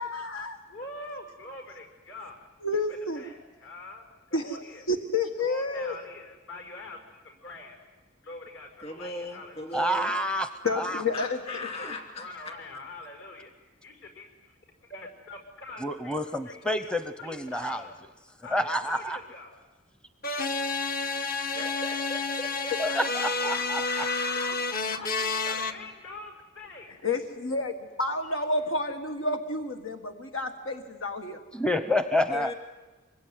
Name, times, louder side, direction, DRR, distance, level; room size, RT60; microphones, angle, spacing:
voice 1, 0.0-0.6 2.6-3.2 4.3-6.0 10.6-11.4 27.0-31.4, left 2 dB, 85° left, 6 dB, 1.7 m, -30 dB
voice 2, 0.7-2.4 3.1-4.8 5.5-7.8 8.2-9.8 10.6-10.9 11.5-13.5 13.8-14.3 14.9-16.2 16.4-16.9 17.2-18.0 18.4-19.7 22.8-23.0 23.3-23.5 24.4-24.6 24.9-26.9, left 2 dB, 60° left, 4 dB, 6.0 m, -44 dB
voice 3, 8.8-10.1 11.1-12.5 21.5-24.8 32.3-32.5, left 3 dB, 30° left, 5 dB, 2.5 m, -38 dB
voice 4, 9.7-10.5 10.8-11.0 15.8-17.8 18.5-19.2 22.8-23.1 23.4-24.1 31.5-32.5, left 1 dB, 5° left, 10 dB, 0.8 m, -28 dB
sound 1, 20.2-25.7, left 3 dB, 45° left, 1.3 m, -30 dB
25.5 x 22.5 x 9.6 m, 1.2 s
head